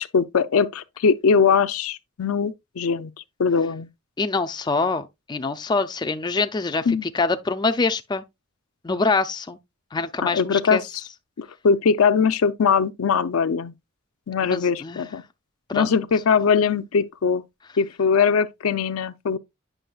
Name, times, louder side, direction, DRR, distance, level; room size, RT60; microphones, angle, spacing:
voice 1, 0.0-3.1 3.4-3.9 6.9-7.0 10.2-10.8 11.4-13.7 14.3-15.2 15.7-17.4 17.8-19.4, left 6 dB, 75° left, 0.5 m, -21 dB
voice 2, 4.2-8.2 8.8-9.6 9.9-10.8 14.4-15.0 15.7-15.9, left 3 dB, 20° left, 0.4 m, -25 dB
9.0 x 6.1 x 2.3 m
head